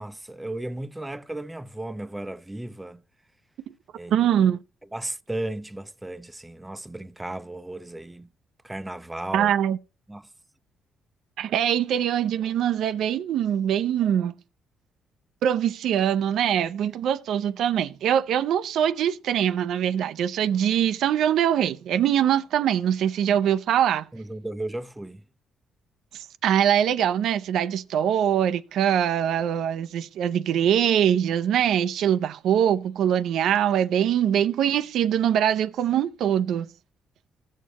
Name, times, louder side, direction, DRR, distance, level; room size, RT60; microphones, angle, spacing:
voice 1, 0.0-3.0 4.0-4.3 4.9-8.3 8.6-9.5 10.1-10.3 24.1-25.2, right 1 dB, 10° right, 0.5 m, -35 dB
voice 2, 4.1-4.6 9.3-9.8 11.4-14.3 15.4-24.1 26.1-36.7, right 9 dB, 75° right, 0.4 m, -23 dB
15.5 x 6.5 x 2.9 m
cardioid pair, 90°, 0 cm